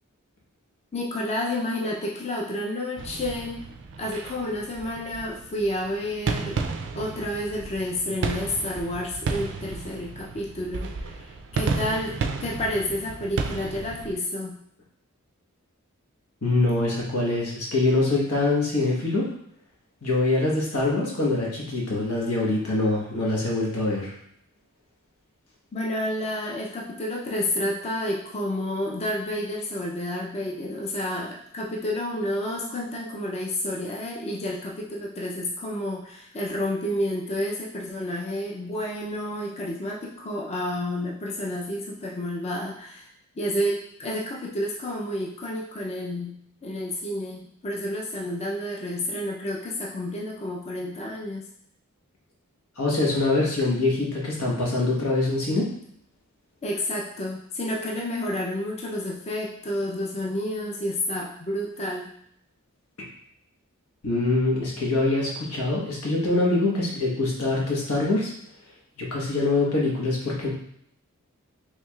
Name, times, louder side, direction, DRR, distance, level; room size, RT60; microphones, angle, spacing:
voice 1, 0.9-3.6 4.0-6.6 6.9-14.6 25.7-43.1 43.4-46.4 46.6-51.5 56.6-62.1, left 1 dB, 30° left, -3 dB, 0.5 m, -30 dB
sound 1, 3.0-14.1, right 4 dB, 55° right, 0.4 m, -33 dB
voice 2, 16.4-19.2 20.0-24.1 52.8-55.7 64.0-68.3 69.0-70.5, left 2 dB, 90° left, -4 dB, 1.2 m, -24 dB
4.6 x 3.1 x 2.3 m, 0.69 s
head